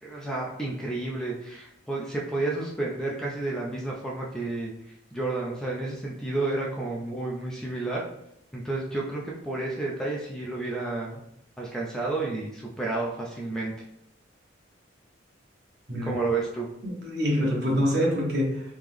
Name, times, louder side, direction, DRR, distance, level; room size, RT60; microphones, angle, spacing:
voice 1, 0.0-4.7 5.1-8.0 8.5-11.2 11.6-13.7 16.0-16.7, right 2 dB, 5° left, -3 dB, 0.5 m, -31 dB
voice 2, 16.8-18.6, equal, 55° right, -4 dB, 1.3 m, -25 dB
3.5 x 2.9 x 3.4 m, 0.81 s
head